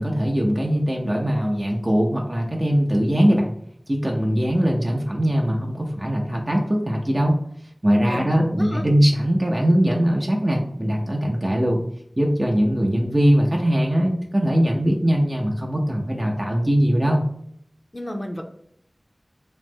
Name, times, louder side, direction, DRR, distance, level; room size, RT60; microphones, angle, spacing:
voice 1, 0.0-3.5 3.9-7.4 7.8-11.8 12.2-17.3, equal, 35° right, -1 dB, 0.5 m, -21 dB
voice 2, 8.1-8.8 17.9-18.4, left 1 dB, 35° left, 3 dB, 0.4 m, -31 dB
3.0 x 2.0 x 3.4 m, 0.71 s
wide cardioid pair, 45°, 0 cm